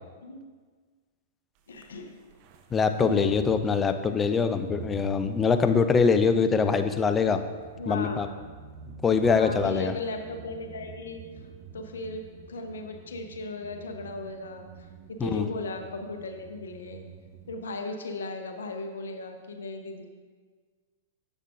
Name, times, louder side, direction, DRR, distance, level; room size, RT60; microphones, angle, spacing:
voice 1, 1.7-2.2 3.0-3.4 7.8-8.3 9.2-11.2 11.7-14.7 15.1-17.1 17.5-20.1, left 2 dB, 75° left, 5 dB, 0.8 m, -37 dB
sound 1, 1.7-17.6, right 6 dB, 45° right, 0.7 m, -47 dB
voice 2, 2.7-7.4 7.9-8.3 9.0-9.9 15.2-15.4, left 5 dB, 20° left, 9 dB, 0.5 m, -23 dB
9.9 x 7.2 x 2.5 m, 1.5 s
hypercardioid pair, 105°, 0 cm